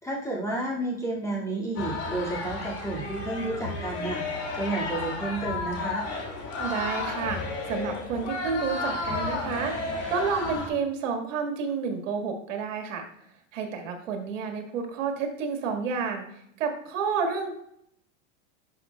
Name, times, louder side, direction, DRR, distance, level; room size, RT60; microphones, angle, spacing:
voice 1, 0.0-6.1, right 2 dB, 10° left, -5 dB, 2.3 m, -31 dB
sound 1, 1.8-10.7, left 3 dB, 40° left, 2.5 m, -32 dB
voice 2, 6.6-9.8 10.1-13.1 13.5-16.3 16.6-17.5, right 5 dB, 80° right, 4 dB, 1.9 m, -30 dB
11.0 x 5.9 x 2.4 m, 0.72 s
supercardioid pair, 135°, 38 cm